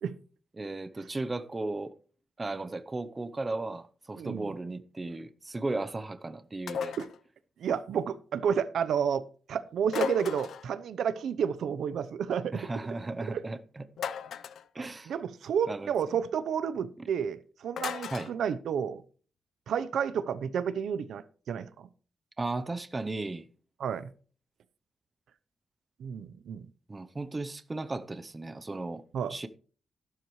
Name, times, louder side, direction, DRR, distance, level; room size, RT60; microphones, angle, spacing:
voice 1, 0.6-1.9 2.4-6.9 12.5-13.8 14.7-15.1 15.7-16.2 17.0-17.1 18.1-18.3 22.4-23.5 26.9-29.0 29.3-29.5, right 2 dB, 20° right, 0.7 m, -35 dB
voice 2, 4.2-4.5 7.0-7.1 7.6-9.2 9.5-12.7 13.3-13.4 15.1-19.0 19.7-21.9 23.8-24.1 26.0-26.7 29.1-29.4, right 7 dB, 90° right, 0.7 m, -31 dB
sound 1, 6.7-7.2 9.9-10.7 14.0-14.7 17.8-18.3, left 7 dB, 80° left, 0.6 m, -35 dB
13.5 x 12.0 x 3.1 m
wide cardioid pair, 165°, 0 cm